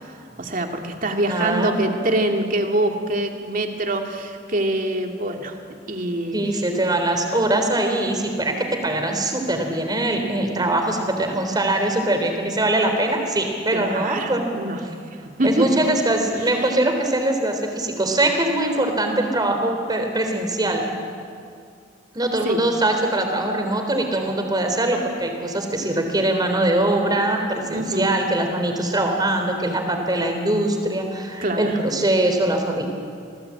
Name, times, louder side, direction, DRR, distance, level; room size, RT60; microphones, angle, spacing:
voice 1, 0.4-5.6 5.9-6.4 13.7-14.8 15.4-15.8 22.4-22.6 27.7-28.1 31.4-31.8, right 1 dB, 50° right, 3 dB, 2.5 m, -24 dB
voice 2, 1.3-1.8 6.3-14.5 15.4-20.8 22.1-32.9, right 1 dB, 25° right, 4 dB, 3.7 m, -22 dB
27.5 x 18.5 x 8.8 m, 2.3 s
head